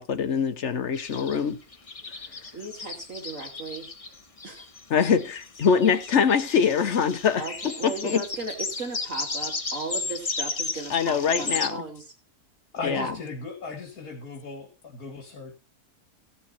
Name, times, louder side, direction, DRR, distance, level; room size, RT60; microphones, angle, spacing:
voice 1, 0.0-1.6 4.9-7.4 7.8-8.2 10.9-11.8 12.8-13.1, left 6 dB, 55° left, 1.1 m, -23 dB
sound 1, 0.9-11.7, left 4 dB, 25° left, 0.9 m, -34 dB
voice 2, 2.5-3.9 4.4-4.7 7.4-12.1 12.9-13.2, right 3 dB, 55° right, 2.8 m, -36 dB
voice 3, 12.7-15.6, left 4 dB, 70° left, 2.5 m, -37 dB
15.5 x 7.0 x 4.2 m
omnidirectional pair, 1.6 m